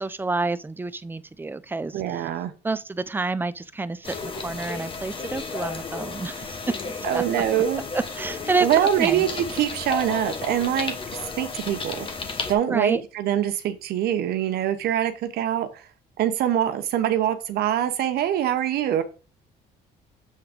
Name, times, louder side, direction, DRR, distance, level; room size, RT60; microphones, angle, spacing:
voice 1, 0.0-2.3 2.6-6.6 7.0-7.2 7.9-8.7 9.0-9.3 12.7-13.0, right 3 dB, 10° right, 0.5 m, -28 dB
voice 2, 1.9-2.5 7.0-7.8 8.6-10.9 11.4-12.1 12.5-15.8 16.2-19.0, right 11 dB, 70° right, 0.9 m, -24 dB
sound 1, 4.0-12.5, left 4 dB, 30° left, 1.1 m, -33 dB
7.7 x 3.4 x 5.0 m
cardioid pair, 110°, 17 cm